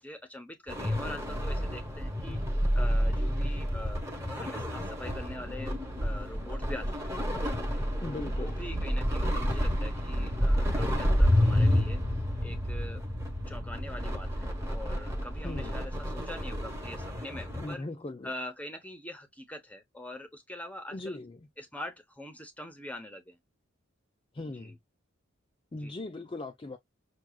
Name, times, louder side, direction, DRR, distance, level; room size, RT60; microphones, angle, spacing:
voice 1, 0.0-2.4 2.7-7.1 7.9-12.0 12.4-13.0 13.5-17.9 18.2-21.2 21.6-23.4 24.5-24.8 25.7-25.9, left 1 dB, 5° left, 0.9 m, -43 dB
sound 1, 0.7-17.7, equal, 15° right, 1.1 m, -29 dB
voice 2, 2.3-2.7 8.0-8.5 15.4-15.8 17.6-18.3 20.9-21.4 24.3-24.8 25.7-26.8, left 2 dB, 25° left, 0.4 m, -39 dB
6.0 x 2.4 x 2.3 m
head